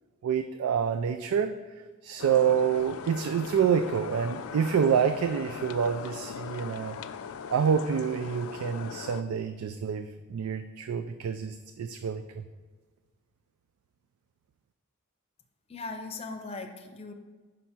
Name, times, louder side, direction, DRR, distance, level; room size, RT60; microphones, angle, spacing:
voice 1, 0.2-1.5 2.0-7.0 7.5-12.4, right 7 dB, 90° right, 9 dB, 0.3 m, -27 dB
sound 1, 2.2-9.2, left 7 dB, 80° left, 0.3 m, -40 dB
voice 2, 15.7-17.1, left 3 dB, 30° left, 4 dB, 0.6 m, -39 dB
5.5 x 5.1 x 5.9 m, 1.4 s
head